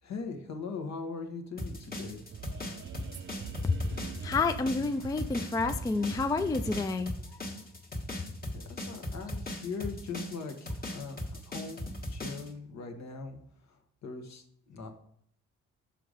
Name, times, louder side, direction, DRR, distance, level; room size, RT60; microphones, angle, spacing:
voice 1, 0.0-2.2 8.5-13.4 13.7-15.0, left 4 dB, 60° left, 4 dB, 1.3 m, -40 dB
sound 1, 1.6-12.5, left 1 dB, 30° left, 1.5 m, -38 dB
sound 2, 1.7-6.8, right 7 dB, 40° right, 0.5 m, -43 dB
voice 2, 4.2-7.1, left 4 dB, 10° left, 9 dB, 0.3 m, -29 dB
5.8 x 5.3 x 5.1 m, 0.69 s
cardioid pair, 90°, 30 cm